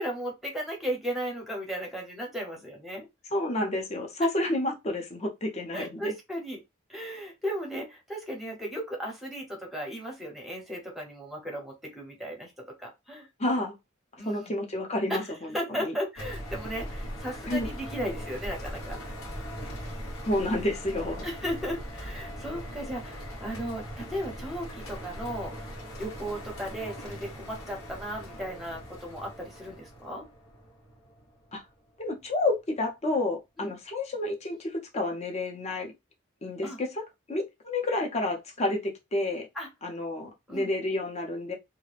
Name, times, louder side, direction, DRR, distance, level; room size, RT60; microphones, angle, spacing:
voice 1, 0.0-3.1 4.2-4.3 5.7-6.6 6.9-13.3 14.2-14.5 15.1-19.0 21.2-25.7 26.0-30.3 33.6-33.7 36.6-36.8 39.5-39.7 40.5-40.7, equal, ahead, 0.8 m, -36 dB
voice 2, 3.3-6.1 13.4-13.8 14.2-15.5 15.8-15.9 17.5-17.7 20.2-21.3 31.5-31.6 32.0-35.9 36.4-37.0 37.3-39.5 39.8-41.5, left 1 dB, 30° left, 0.6 m, -30 dB
sound 1, 16.2-31.6, equal, 85° left, 1.0 m, -40 dB
2.4 x 2.2 x 3.2 m
head